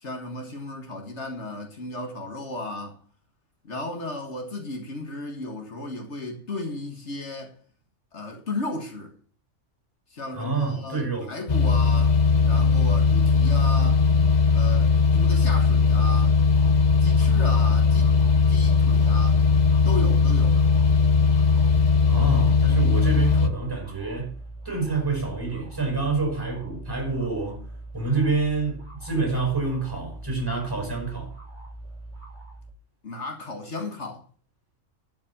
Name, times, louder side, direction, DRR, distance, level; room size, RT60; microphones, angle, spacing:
voice 1, 0.0-3.0 3.6-7.5 8.1-9.1 10.1-12.2 12.4-14.1 14.5-16.4 17.0-18.2 18.5-19.4 19.9-20.6 33.0-34.2, left 2 dB, 65° left, 2.0 m, -34 dB
voice 2, 10.3-11.3 22.1-24.4 24.6-27.7 27.9-31.4, right 4 dB, 15° right, 5.3 m, -27 dB
sound 1, 11.5-23.5, left 5 dB, 40° left, 0.9 m, -19 dB
sound 2, 16.5-32.7, right 2 dB, 40° right, 4.3 m, -42 dB
11.0 x 6.1 x 7.2 m
omnidirectional pair, 1.3 m